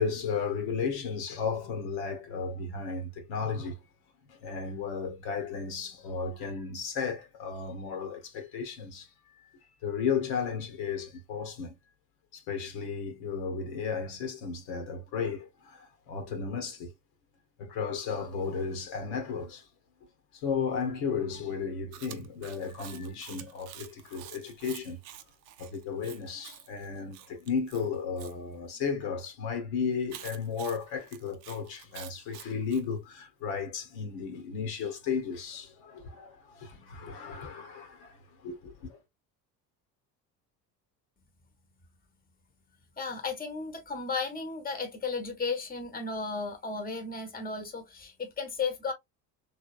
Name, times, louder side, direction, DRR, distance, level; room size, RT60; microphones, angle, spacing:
voice 1, 0.0-3.8 4.3-9.1 9.8-11.7 12.3-16.9 17.6-19.7 20.3-25.0 25.6-39.0, left 6 dB, 60° left, 1.4 m, -34 dB
Chewing mastication, 21.9-28.3 30.1-32.8, right 11 dB, 80° right, 0.7 m, -48 dB
voice 2, 43.0-48.9, left 4 dB, 20° left, 1.3 m, -34 dB
3.4 x 3.3 x 2.4 m
hypercardioid pair, 60°, 49 cm